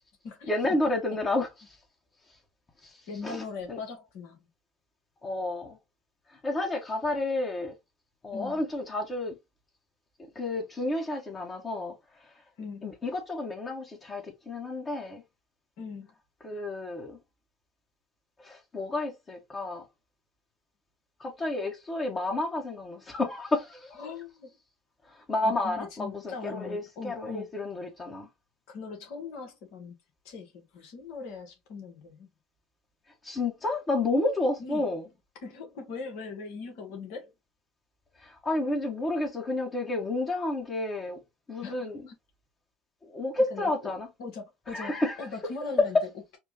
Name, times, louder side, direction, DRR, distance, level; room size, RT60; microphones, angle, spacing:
voice 1, 0.5-1.8 2.8-3.0 3.2-3.8 5.2-5.8 6.3-7.8 8.2-9.3 10.3-11.9 12.2-12.3 12.8-15.2 16.4-17.2 18.4-19.8 21.2-24.0 25.1-28.3 33.2-35.1 38.2-41.2 41.5-42.1 43.1-44.1 44.7-45.3 45.9-46.0, left 2 dB, 30° left, 1.4 m, -31 dB
voice 2, 3.1-4.4 8.3-8.6 12.6-12.9 15.8-16.1 24.0-24.5 25.4-27.5 28.7-29.9 30.2-32.3 34.6-34.8 35.4-37.3 41.6-42.1 43.5-43.9 44.2-46.0, left 4 dB, 65° left, 1.6 m, -40 dB
4.4 x 2.5 x 2.9 m
hypercardioid pair, 70°, 0 cm